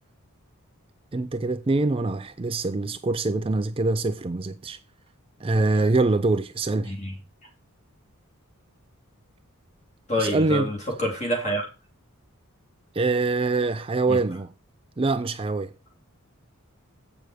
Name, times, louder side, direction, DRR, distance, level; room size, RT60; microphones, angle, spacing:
voice 1, 1.1-4.8 5.4-6.9 10.2-10.7 12.9-14.5 15.0-15.7, right 3 dB, 25° right, 0.4 m, -24 dB
voice 2, 6.8-7.2 10.1-11.6 14.1-14.2, equal, 30° left, 3.1 m, -27 dB
8.0 x 6.3 x 5.0 m
head